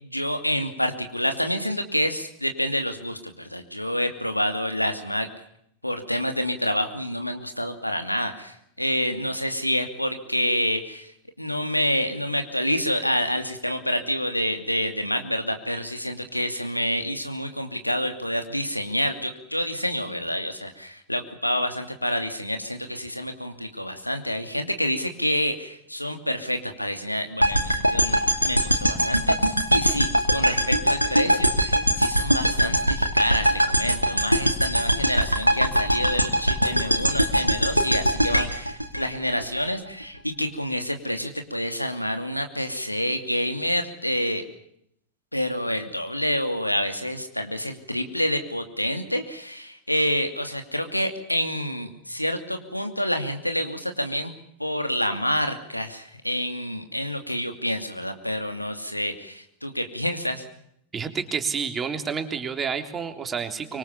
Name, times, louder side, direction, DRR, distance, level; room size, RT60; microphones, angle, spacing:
voice 1, 0.0-5.3 5.8-11.1 11.4-44.4 45.3-54.3 54.6-60.4, equal, 90° left, 7 dB, 2.7 m, -28 dB
sound 1, 27.4-39.6, equal, 90° right, 2.6 m, -22 dB
voice 2, 60.9-63.8, right 6 dB, 20° right, 7 dB, 3.4 m, -29 dB
25.0 x 24.5 x 7.2 m, 0.73 s
figure-of-eight pair, 90°, 0 cm